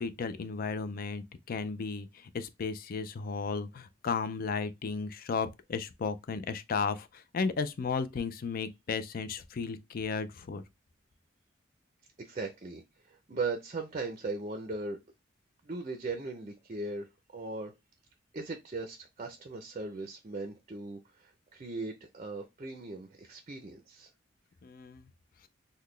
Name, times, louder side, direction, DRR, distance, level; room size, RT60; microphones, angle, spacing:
voice 1, 0.0-10.6 24.6-25.1, left 5 dB, 50° left, 0.4 m, -34 dB
voice 2, 12.2-15.0 15.6-17.7 18.3-24.1, right 3 dB, 40° right, 0.5 m, -38 dB
3.9 x 2.2 x 3.1 m
head